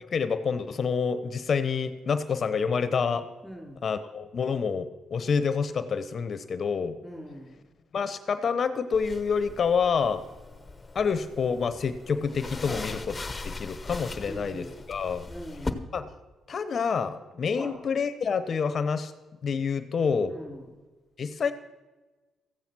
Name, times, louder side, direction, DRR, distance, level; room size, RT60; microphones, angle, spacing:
voice 1, 0.1-3.3 3.8-7.0 7.9-10.2 10.9-13.1 13.4-15.3 15.9-16.1 16.5-19.1 19.4-20.3 21.2-21.5, left 6 dB, 45° left, 11 dB, 0.9 m, -28 dB
voice 2, 3.4-3.8 7.0-7.8 12.6-12.9 14.1-14.8 15.3-15.9 17.5-17.8 20.3-20.8, equal, ahead, 1 dB, 4.0 m, -42 dB
sound 1, 8.9-15.7, left 3 dB, 20° left, 1.1 m, -39 dB
14.5 x 9.1 x 6.1 m, 1.2 s
cardioid pair, 90°, 0 cm